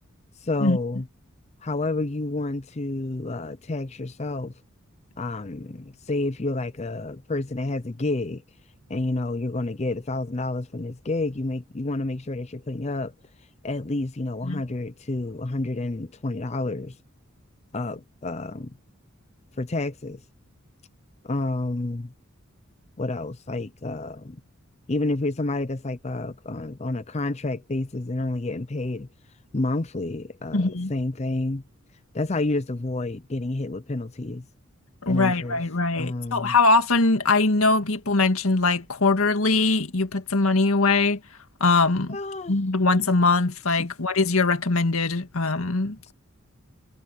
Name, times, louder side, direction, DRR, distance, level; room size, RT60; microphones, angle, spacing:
voice 1, 0.4-1.1 1.6-4.5 5.2-8.4 8.9-13.1 13.6-16.9 17.7-18.7 19.6-20.2 21.2-22.1 23.0-24.4 24.9-29.1 29.5-31.6 32.1-34.5 35.1-35.6 36.0-36.6 42.1-42.9 43.8-43.9 46.1-46.2, left 2 dB, 30° left, 0.6 m, -29 dB
voice 2, 30.5-30.9 35.0-41.2 41.6-42.2 42.5-46.1, left 3 dB, 85° left, 1.9 m, -22 dB
head